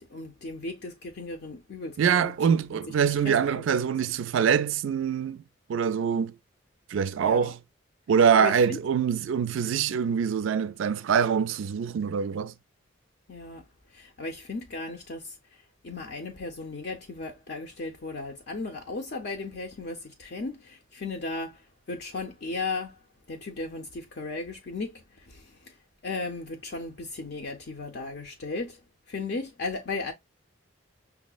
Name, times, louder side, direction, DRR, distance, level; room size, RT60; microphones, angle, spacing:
voice 1, 0.1-2.3 2.7-2.9 3.2-3.6 7.2-7.5 8.4-8.8 13.3-13.6 13.9-15.3 15.8-21.6 21.9-23.0 23.3-25.7 26.0-28.8 29.1-30.1, left 3 dB, 55° left, 0.5 m, -36 dB
voice 2, 2.0-5.4 5.7-6.3 6.9-7.6 8.1-12.5, right 7 dB, 75° right, 0.3 m, -24 dB
5.7 x 2.0 x 2.2 m
head